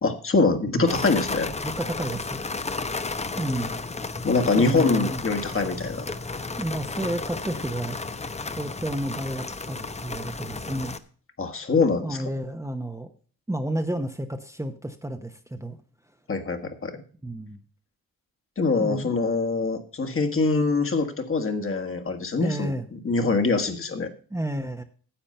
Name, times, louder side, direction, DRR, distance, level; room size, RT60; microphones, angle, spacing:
voice 1, 0.0-1.5 4.2-6.1 11.4-12.2 16.3-17.0 18.6-24.1, left 3 dB, 40° left, 5 dB, 1.6 m, -24 dB
sound 1, 0.9-11.0, left 3 dB, 20° left, 0.8 m, -33 dB
voice 2, 1.6-2.4 3.4-3.8 4.5-5.3 6.6-8.0 8.6-11.0 12.0-13.1 13.5-15.8 17.2-17.6 18.8-19.1 22.4-22.9 24.3-24.8, right 1 dB, 10° right, 6 dB, 0.9 m, -31 dB
10.0 x 7.4 x 5.5 m, 0.42 s
cardioid pair, 80°, 34 cm